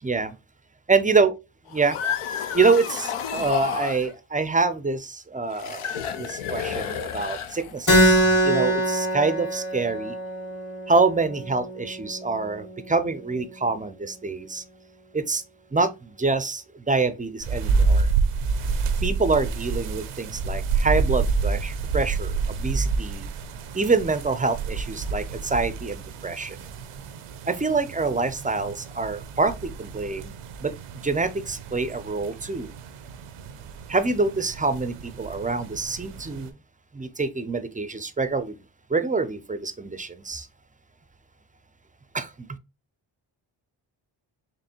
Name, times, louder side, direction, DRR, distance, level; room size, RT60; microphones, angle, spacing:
voice 1, 0.0-0.4 0.9-1.3 1.7-1.9 2.5-10.1 10.9-14.6 15.1-15.4 15.7-18.1 19.0-23.3 23.7-26.6 27.5-30.3 30.6-30.7 31.0-32.7 33.9-36.5 36.9-38.6 38.9-40.5 42.1-42.6, right 4 dB, 15° right, 0.4 m, -26 dB
sound 1, 1.7-4.1 5.5-8.0, left 8 dB, 80° left, 0.7 m, -31 dB
Keyboard (musical), 7.9-13.0, equal, 40° left, 2.2 m, -24 dB
sound 2, 17.4-36.5, right 4 dB, 85° right, 0.6 m, -29 dB
4.2 x 3.0 x 2.8 m
supercardioid pair, 45°, 49 cm